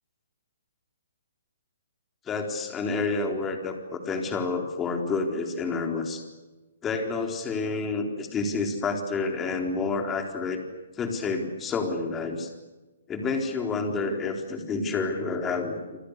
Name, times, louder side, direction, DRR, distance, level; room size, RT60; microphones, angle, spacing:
voice 1, 2.3-6.2 6.8-10.6 11.0-12.5 13.1-15.8, left 4 dB, 15° left, 3 dB, 4.1 m, -29 dB
29.0 x 27.0 x 6.8 m, 1.2 s
hypercardioid pair, 160°, 0 cm